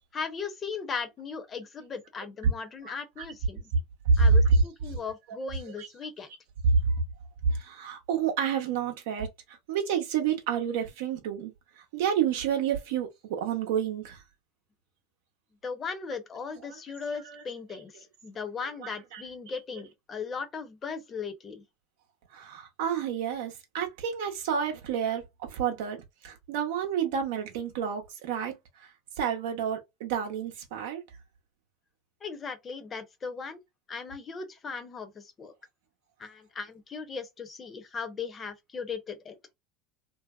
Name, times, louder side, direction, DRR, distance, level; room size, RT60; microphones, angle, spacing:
voice 1, 0.1-3.6 4.2-6.3 15.6-21.6 32.2-33.6 33.9-35.5 36.2-39.3, left 5 dB, 30° left, 0.7 m, -38 dB
voice 2, 4.1-4.6 5.8-5.9 6.6-6.8 7.5-14.2 16.6-16.8 17.2-17.4 18.8-19.2 22.3-25.2 25.5-28.9 29.2-31.0, right 6 dB, 70° right, 0.7 m, -28 dB
2.6 x 2.0 x 2.3 m
hypercardioid pair, 80°, 0 cm